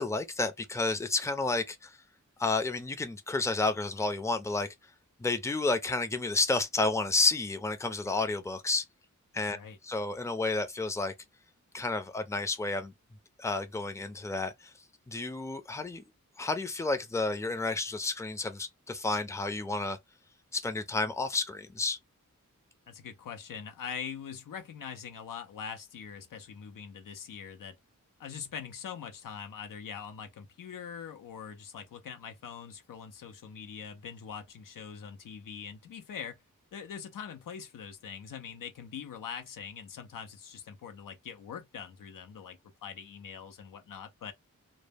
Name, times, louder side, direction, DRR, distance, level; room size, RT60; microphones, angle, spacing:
voice 1, 0.0-2.0 2.4-4.7 5.2-8.8 9.3-9.6 9.8-11.1 11.7-12.9 13.4-14.7 15.1-16.0 16.4-20.0 20.5-22.0, left 3 dB, 10° left, 0.5 m, -31 dB
voice 2, 22.9-27.8 28.2-36.4 36.7-44.3, left 7 dB, 85° left, 0.5 m, -43 dB
2.0 x 2.0 x 3.3 m
cardioid pair, 60°, 32 cm